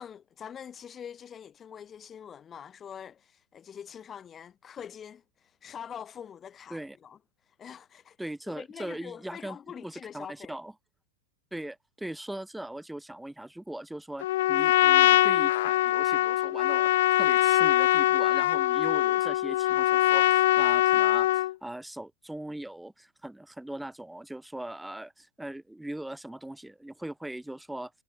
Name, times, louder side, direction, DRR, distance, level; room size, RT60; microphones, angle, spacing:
voice 1, 0.0-7.2 7.5-8.2 8.6-10.6, left 8 dB, 25° left, 2.0 m, -44 dB
voice 2, 8.2-10.7 11.5-27.9, right 1 dB, 5° right, 6.2 m, -40 dB
Trumpet, 14.2-21.5, left 15 dB, 55° left, 1.0 m, -23 dB
figure-of-eight pair, 90°, 0 cm